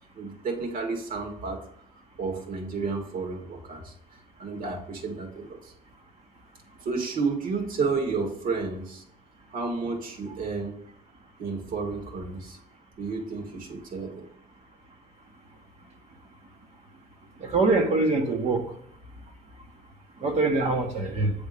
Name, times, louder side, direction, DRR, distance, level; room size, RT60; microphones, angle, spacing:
voice 1, 0.2-1.6 2.2-3.9 4.4-5.7 6.8-9.0 9.5-10.8 11.4-12.6 13.0-14.3, right 4 dB, 55° right, 2 dB, 2.0 m, -31 dB
voice 2, 17.4-18.6 20.2-21.3, right 3 dB, 40° right, 1 dB, 1.4 m, -24 dB
8.2 x 3.6 x 6.7 m, 0.69 s
cardioid pair, 110°, 17 cm